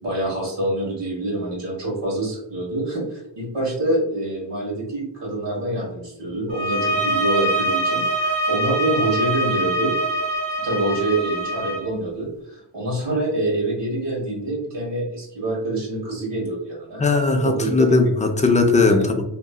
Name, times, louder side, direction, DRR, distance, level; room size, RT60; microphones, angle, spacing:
voice 1, 0.0-9.9 10.6-17.0 17.4-17.7, right 1 dB, 75° right, -4 dB, 1.5 m, -26 dB
sound 1, 6.5-11.8, right 1 dB, 50° right, 1.3 m, -24 dB
voice 2, 17.0-19.2, left 3 dB, 20° left, 4 dB, 0.4 m, -18 dB
2.9 x 2.6 x 2.3 m, 0.84 s
wide cardioid pair, 90°, 44 cm